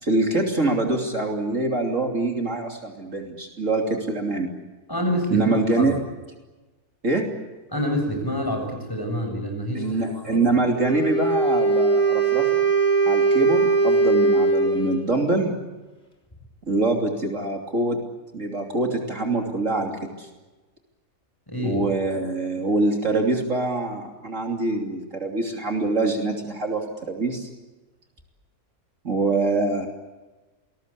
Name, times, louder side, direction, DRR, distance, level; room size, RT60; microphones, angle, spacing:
voice 1, 0.0-4.5 5.3-6.0 7.0-7.2 9.7-12.6 13.0-15.6 16.7-18.0 18.3-19.9 20.2-20.3 21.6-27.5 29.0-29.9, right 2 dB, 50° right, 2 dB, 3.4 m, -24 dB
voice 2, 4.9-5.9 7.7-10.6 21.5-21.8, equal, 15° left, 3 dB, 7.3 m, -27 dB
Wind instrument woodwind instrument, 10.8-15.1, right 3 dB, 45° left, 3.9 m, -20 dB
28.0 x 21.0 x 8.5 m, 1.2 s
omnidirectional pair, 1.6 m